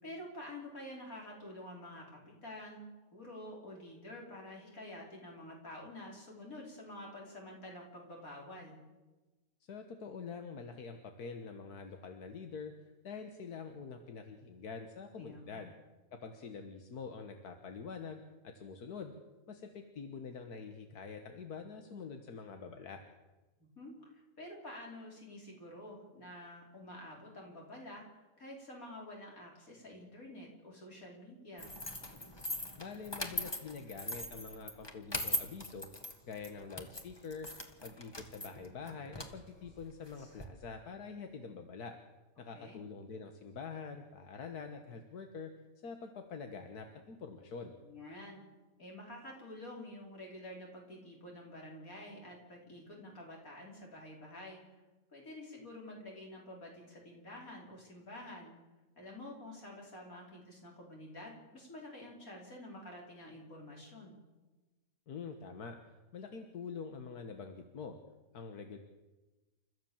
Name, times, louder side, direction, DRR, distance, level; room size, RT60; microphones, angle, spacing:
voice 1, 0.0-2.8 3.1-8.8 15.2-15.6 23.6-31.7 42.5-42.8 47.8-48.5 48.8-54.7 55.1-58.5 59.0-64.2, left 1 dB, 65° left, -1 dB, 5.7 m, -49 dB
voice 2, 9.6-12.7 13.0-15.7 16.1-19.1 19.5-23.0 32.8-35.9 36.2-37.5 37.8-42.0 42.4-45.5 45.8-47.8 65.1-65.8 66.1-68.0 68.3-68.8, left 5 dB, 90° left, 6 dB, 1.9 m, -45 dB
sound 1, 31.6-40.4, left 1 dB, 15° left, 1.7 m, -41 dB
29.5 x 14.0 x 7.3 m, 1.2 s
omnidirectional pair, 1.6 m